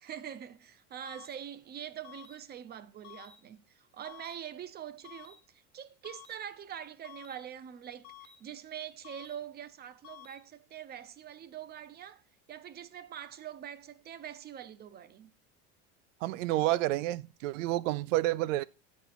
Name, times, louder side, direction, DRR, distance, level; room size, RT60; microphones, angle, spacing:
voice 1, 0.0-12.2 12.5-15.3, right 9 dB, 25° right, 0.5 m, -44 dB
sound 1, 1.0-1.4 2.0-2.4 3.0-3.4 4.0-4.4 5.0-5.4 6.0-6.4 7.0-7.4 8.0-8.4 9.0-9.4 10.0-10.4, left 11 dB, 50° left, 1.3 m, -51 dB
voice 2, 16.2-18.6, right 16 dB, 85° right, 0.5 m, -29 dB
8.1 x 4.3 x 5.7 m
supercardioid pair, 125°, 37 cm